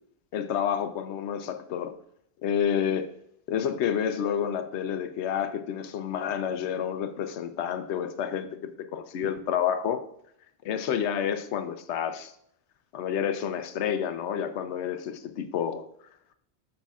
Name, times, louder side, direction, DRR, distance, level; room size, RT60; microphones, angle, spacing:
voice 1, 0.3-2.0 2.4-3.1 3.5-8.5 8.9-10.0 10.6-12.3 12.9-15.8, left 8 dB, 85° left, 9 dB, 0.9 m, -29 dB
8.2 x 6.6 x 2.3 m, 0.71 s
omnidirectional pair, 1.1 m